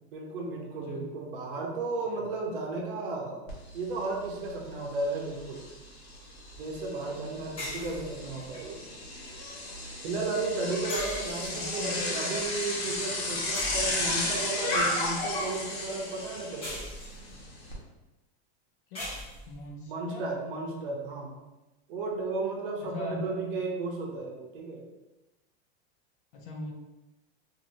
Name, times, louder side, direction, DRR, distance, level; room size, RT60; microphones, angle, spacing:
voice 1, 0.1-3.5 3.7-5.6 6.6-8.8 10.0-16.8 19.9-21.4 21.9-24.8, right 3 dB, 55° right, -1 dB, 0.8 m, -34 dB
Bicycle, 3.5-3.6 4.0-17.7, left 2 dB, 65° left, 1.2 m, -34 dB
sound 1, 7.6-8.6 10.9-11.9 13.5-14.4 16.6-17.5 18.9-19.7, left 1 dB, 15° left, 0.8 m, -40 dB
voice 2, 11.5-12.1 18.9-19.2 19.5-20.3 22.8-23.3 26.3-26.7, left 1 dB, 50° left, 1 dB, 0.6 m, -40 dB
3.0 x 2.6 x 2.6 m, 1.0 s
supercardioid pair, 175°, 32 cm